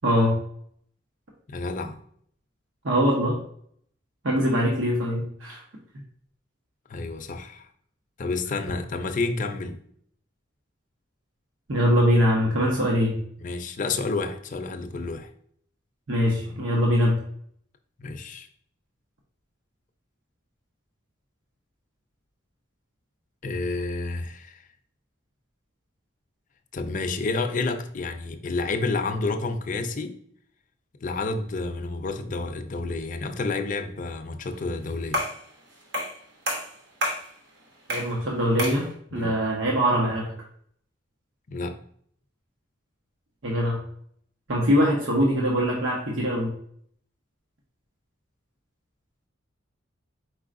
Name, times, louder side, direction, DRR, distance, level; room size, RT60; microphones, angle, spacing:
voice 1, 0.0-0.4 2.8-3.3 4.2-5.6 11.7-13.2 16.1-17.2 37.9-40.3 43.4-43.8 44.5-46.5, equal, 90° right, 1.0 m, -22 dB
voice 2, 1.5-2.0 6.9-7.7 8.2-9.8 13.4-15.3 18.0-18.5 23.4-24.6 26.7-30.1 31.0-35.2 39.1-39.3 41.5-41.8, left 3 dB, 40° left, 0.5 m, -30 dB
sound 1, 35.1-35.4 35.9-36.2 36.5-37.3 37.9-38.2 38.6-38.9, equal, 65° right, 1.1 m, -28 dB
4.7 x 4.2 x 2.5 m
head